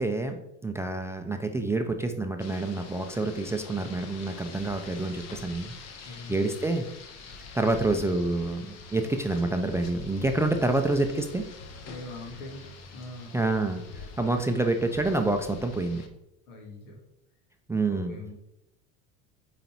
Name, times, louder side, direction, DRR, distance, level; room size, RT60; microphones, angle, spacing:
voice 1, 0.0-6.9 7.5-11.4 13.3-16.0 17.7-18.1, right 2 dB, 5° right, 5 dB, 0.4 m, -28 dB
Rain, 2.4-16.1, left 4 dB, 45° left, 1.0 m, -45 dB
voice 2, 6.0-6.4 10.4-10.7 11.8-12.6 12.9-13.4 16.5-17.0 17.9-18.3, left 2 dB, 80° left, 1 dB, 1.8 m, -42 dB
5.2 x 4.1 x 4.5 m, 0.85 s
supercardioid pair, 95°, 38 cm